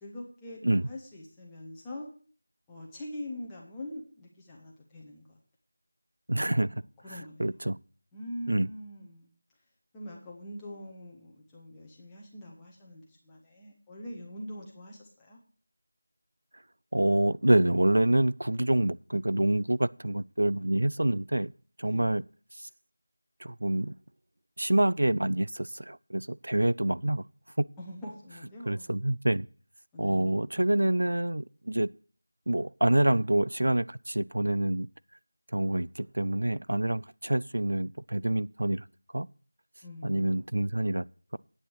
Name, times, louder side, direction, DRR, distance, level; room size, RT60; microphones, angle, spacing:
voice 1, 0.0-2.1 2.7-5.4 6.6-7.6 8.1-9.3 9.9-15.4 21.8-22.1 27.8-28.9 29.9-30.3 39.8-40.5, left 1 dB, 5° left, 0.8 m, -43 dB
voice 2, 6.3-6.7 7.4-7.8 8.5-8.7 16.9-21.5 21.8-22.2 22.6-22.7 23.4-23.9 24.6-27.2 27.6-27.7 28.7-29.5 30.0-31.9 32.5-34.9 35.5-38.8 39.1-39.3 40.0-41.1, right 1 dB, 60° right, 0.4 m, -26 dB
8.8 x 7.4 x 6.4 m
figure-of-eight pair, 180°, 0 cm